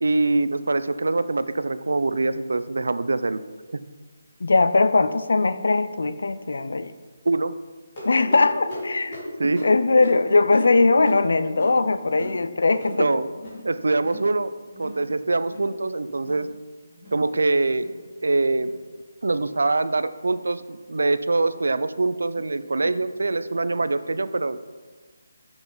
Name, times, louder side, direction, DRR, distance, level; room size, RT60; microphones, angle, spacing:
voice 1, 0.0-3.4 7.3-7.5 9.4-9.6 13.0-13.3 13.6-14.5 14.8-16.5 17.1-17.9 18.2-18.7 19.2-24.6, right 3 dB, 85° right, 13 dB, 0.4 m, -24 dB
voice 2, 4.4-6.9 8.0-13.2, left 3 dB, 60° left, 12 dB, 0.4 m, -20 dB
sound 1, 8.0-13.0 13.3-13.6 13.9-14.3 14.6-15.0 15.4-15.7 16.1-16.4 16.9-17.2 17.7-18.0 18.5-18.7 19.4-19.5 20.2-20.3 21.1-21.2, equal, 20° left, 2.3 m, -38 dB
6.9 x 5.7 x 3.9 m, 1.4 s
hypercardioid pair, 180°, 0 cm